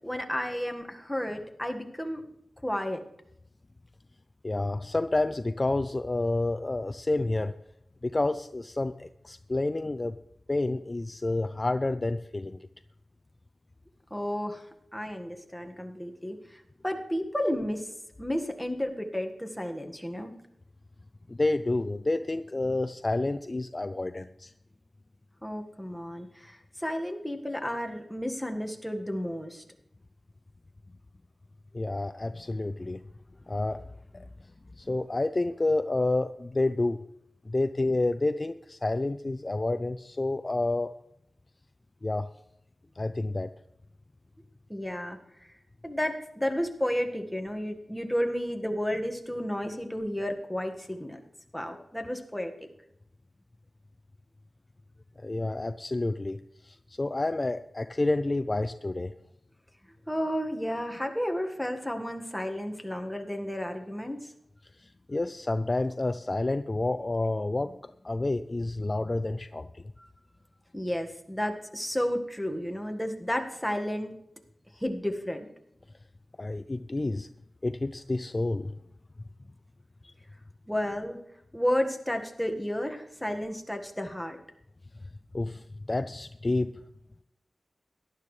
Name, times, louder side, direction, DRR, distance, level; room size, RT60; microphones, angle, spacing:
voice 1, 0.0-2.2 2.6-3.0 14.1-17.9 18.2-20.3 25.4-29.6 44.7-45.5 45.8-51.2 51.5-52.7 60.1-64.3 70.0-70.1 70.7-74.1 74.8-75.5 80.7-81.2 81.5-84.4, equal, 5° left, 3 dB, 1.7 m, -32 dB
voice 2, 4.4-7.5 8.0-10.2 10.5-12.7 21.3-24.5 31.7-33.0 33.5-33.8 34.1-34.2 34.8-37.0 37.5-40.9 42.0-42.3 43.0-43.5 55.2-59.1 64.8-69.8 76.4-77.3 77.6-78.7 80.0-80.1 85.3-86.8, left 2 dB, 35° left, 11 dB, 0.4 m, -29 dB
17.5 x 11.5 x 3.3 m, 0.79 s
cardioid pair, 60°, 0 cm